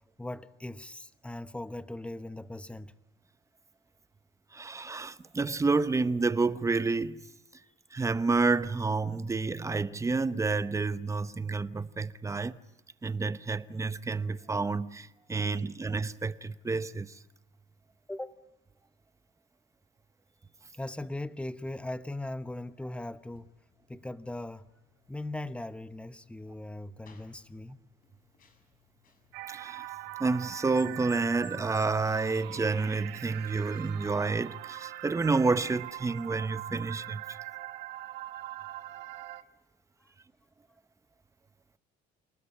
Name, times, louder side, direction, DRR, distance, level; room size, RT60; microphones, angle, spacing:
voice 1, 0.2-2.9 15.3-15.6 18.1-18.3 20.7-23.5 23.9-24.7 25.1-27.8, left 1 dB, 5° left, 1.0 m, -39 dB
voice 2, 4.5-7.3 7.9-12.6 13.0-17.1 29.5-29.9 30.2-37.4, right 3 dB, 20° right, 0.9 m, -29 dB
sound 1, 23.3-33.8, left 7 dB, 55° left, 6.6 m, -61 dB
sound 2, 29.3-39.4, right 16 dB, 85° right, 1.1 m, -42 dB
28.0 x 19.0 x 9.9 m
cardioid pair, 110°, 17 cm